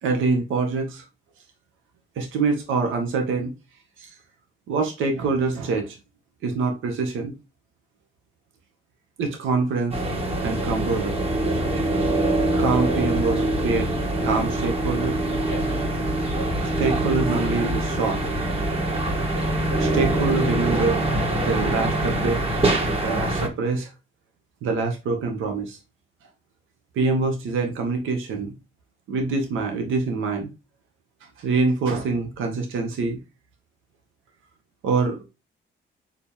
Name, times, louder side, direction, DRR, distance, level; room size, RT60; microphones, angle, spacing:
voice 1, 0.0-1.0 2.2-3.5 4.0-4.1 4.7-6.0 6.4-7.3 9.2-10.0 10.4-11.2 12.6-13.9 14.2-15.2 16.8-18.2 19.8-21.0 21.4-22.4 23.0-23.9 24.6-25.8 27.0-28.5 29.1-30.5 31.4-33.2 34.8-35.2, right 4 dB, 80° right, 1.8 m, -25 dB
sound 1, 9.9-23.5, right 1 dB, 30° right, 2.6 m, -24 dB
6.7 x 5.3 x 3.5 m
cardioid pair, 90°, 20 cm